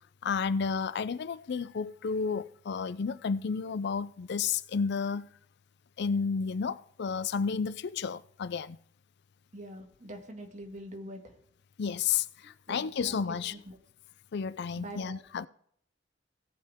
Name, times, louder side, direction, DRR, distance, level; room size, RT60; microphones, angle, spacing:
voice 1, 0.2-5.3 6.0-8.8 11.8-13.6 14.3-15.5, left 6 dB, 60° left, 0.4 m, -31 dB
voice 2, 9.5-11.4 12.7-13.8 14.8-15.2, right 1 dB, 40° right, 2.0 m, -44 dB
17.5 x 6.8 x 3.6 m
head